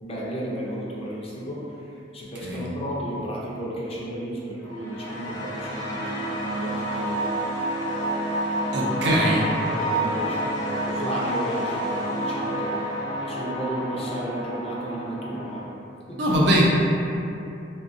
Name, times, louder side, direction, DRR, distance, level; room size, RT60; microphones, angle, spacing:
voice 1, 0.0-7.2 9.3-10.5 10.8-12.8 13.2-15.6 16.1-16.3, equal, 30° left, -5 dB, 0.5 m, -33 dB
sound 1, 4.6-15.6, right 1 dB, 70° left, 0.7 m, -29 dB
voice 2, 8.7-9.5 16.2-16.6, equal, 65° right, -4 dB, 0.5 m, -21 dB
3.5 x 2.2 x 2.5 m, 2.7 s
head